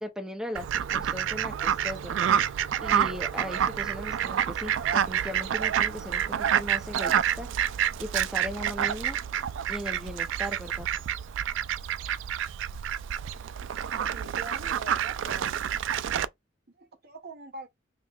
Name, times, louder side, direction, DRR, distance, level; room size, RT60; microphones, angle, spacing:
voice 1, 0.0-2.3 2.8-7.5 8.0-9.2 9.7-10.9, equal, 5° right, 0.7 m, -38 dB
Fowl, 0.6-16.3, right 9 dB, 80° right, 0.3 m, -28 dB
voice 2, 13.9-15.5 16.8-17.7, right 3 dB, 55° right, 0.9 m, -43 dB
5.2 x 3.0 x 2.3 m
head